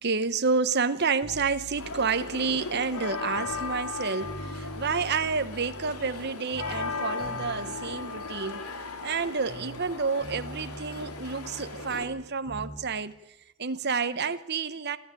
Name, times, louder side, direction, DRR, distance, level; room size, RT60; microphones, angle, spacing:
voice 1, 0.0-8.6 9.0-13.1 13.6-15.0, right 5 dB, 45° right, 0.9 m, -29 dB
sound 1, 1.2-3.9 4.2-6.3 6.5-9.9 10.2-12.8 13.1-13.2, right 1 dB, 5° right, 7.8 m, -45 dB
sound 2, 1.8-12.0, left 4 dB, 80° left, 3.2 m, -37 dB
27.5 x 14.0 x 8.9 m
head